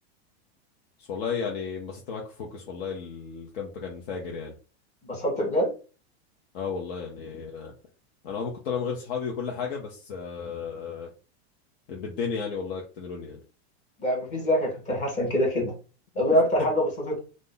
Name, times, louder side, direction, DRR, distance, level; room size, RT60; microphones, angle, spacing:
voice 1, 1.0-4.5 6.5-7.7 8.2-11.1 11.9-13.4 16.3-16.7, left 6 dB, 65° left, 0.7 m, -33 dB
voice 2, 5.0-5.7 14.0-15.7 16.2-17.2, equal, 20° left, 0.9 m, -25 dB
2.5 x 2.1 x 3.7 m
supercardioid pair, 165°, 32 cm